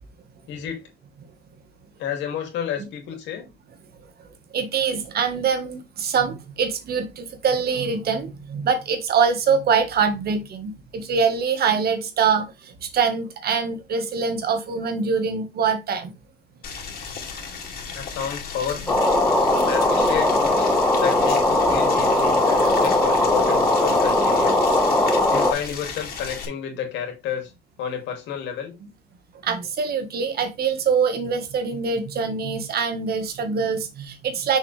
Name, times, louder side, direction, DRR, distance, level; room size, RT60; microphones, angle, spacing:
voice 1, 0.5-0.9 2.0-3.5 17.9-19.1 19.7-24.7 25.3-27.5 27.8-28.7, left 8 dB, 90° left, 2.6 m, -31 dB
voice 2, 4.5-16.1 29.4-34.6, right 6 dB, 60° right, 1.7 m, -24 dB
Boiling, 16.6-26.5, left 5 dB, 55° left, 2.7 m, -35 dB
sound 1, 18.9-25.5, left 2 dB, 10° left, 2.0 m, -19 dB
6.5 x 5.1 x 3.4 m
cardioid pair, 105°, 18 cm